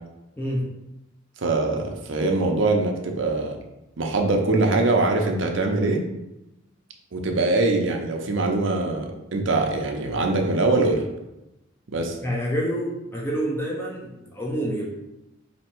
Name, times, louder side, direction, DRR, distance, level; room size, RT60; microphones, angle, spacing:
voice 1, 1.4-3.6 4.0-6.0 7.1-11.1 11.9-12.2, right 2 dB, 70° right, 2 dB, 0.6 m, -23 dB
voice 2, 12.2-14.9, equal, 10° left, -3 dB, 0.7 m, -27 dB
4.2 x 2.8 x 4.4 m, 0.93 s
head